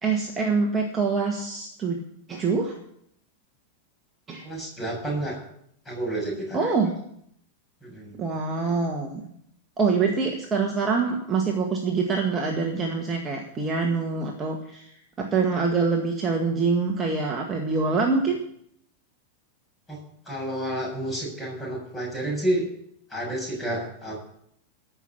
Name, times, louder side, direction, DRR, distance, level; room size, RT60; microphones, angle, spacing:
voice 1, 0.0-2.0 2.3-2.8 4.3-4.5 6.5-7.0 8.2-9.2 9.8-14.9 15.2-18.4, right 4 dB, 20° right, 1 dB, 1.9 m, -25 dB
voice 2, 4.4-5.4 5.9-6.7 7.8-8.2 19.9-20.0 20.3-22.7 23.1-24.2, right 1 dB, 10° left, -2 dB, 7.0 m, -30 dB
15.0 x 6.1 x 8.7 m, 0.70 s
figure-of-eight pair, 90°, 0 cm